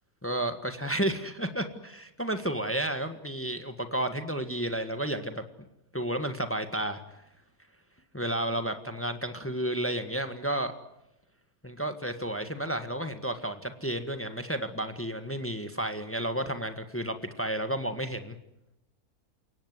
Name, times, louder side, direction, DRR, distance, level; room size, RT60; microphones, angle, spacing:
voice 1, 0.2-5.4 5.9-7.0 8.1-10.7 11.6-18.3, right 1 dB, 10° left, 8 dB, 1.5 m, -32 dB
29.5 x 17.5 x 9.7 m, 0.88 s
omnidirectional pair, 1.6 m